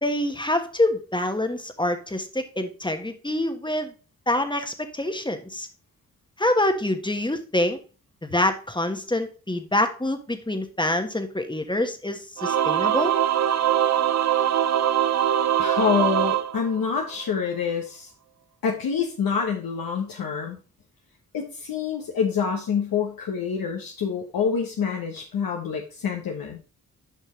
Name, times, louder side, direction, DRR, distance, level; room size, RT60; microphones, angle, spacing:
voice 1, 0.0-3.9 4.3-5.7 6.4-7.8 8.2-13.1, left 1 dB, 15° left, 7 dB, 1.3 m, -26 dB
Singing / Musical instrument, 12.4-17.2, right 10 dB, 50° right, 0.5 m, -22 dB
voice 2, 15.6-18.1 18.6-20.6 21.3-26.6, left 6 dB, 70° left, 1 dB, 1.2 m, -26 dB
8.5 x 5.4 x 3.2 m, 0.35 s
supercardioid pair, 40°, 36 cm